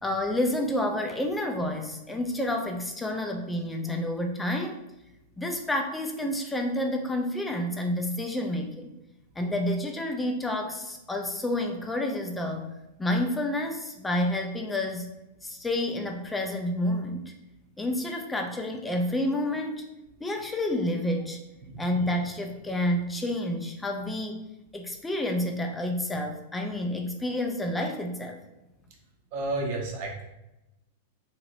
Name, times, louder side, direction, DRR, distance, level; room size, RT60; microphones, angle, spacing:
voice 1, 0.0-4.8 5.4-8.9 9.4-12.7 13.0-15.1 15.4-17.3 17.8-19.8 20.2-21.4 21.8-24.4 24.7-28.4, left 1 dB, 10° left, 3 dB, 0.5 m, -29 dB
voice 2, 29.3-30.2, right 2 dB, 55° right, 0 dB, 0.8 m, -31 dB
3.0 x 2.9 x 2.5 m, 0.94 s
hypercardioid pair, 110°, 0 cm